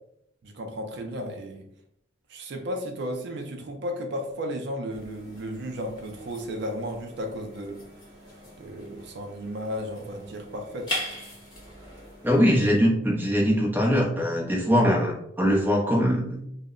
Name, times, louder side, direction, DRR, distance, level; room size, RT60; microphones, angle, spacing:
voice 1, 0.4-1.7 2.3-7.8 8.6-11.0, equal, 60° right, 3 dB, 0.4 m, -34 dB
sound 1, 4.9-12.7, left 1 dB, 25° left, 1.0 m, -40 dB
voice 2, 12.2-16.4, equal, 10° right, -2 dB, 0.6 m, -22 dB
2.1 x 2.0 x 3.6 m, 0.75 s
head